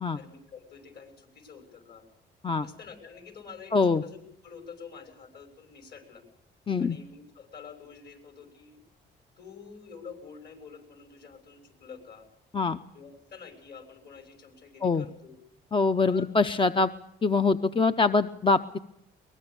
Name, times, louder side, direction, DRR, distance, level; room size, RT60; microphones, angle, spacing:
voice 1, 0.1-2.1 2.6-6.2 6.8-8.8 9.4-12.3 12.9-15.4 16.0-16.3, left 6 dB, 55° left, 6 dB, 6.6 m, -47 dB
voice 2, 3.7-4.0 6.7-7.0 12.5-12.8 14.8-15.0 15.7-16.9 17.2-18.8, left 4 dB, 25° left, 10 dB, 0.7 m, -24 dB
22.5 x 20.0 x 6.9 m, 0.79 s
cardioid pair, 90°, 20 cm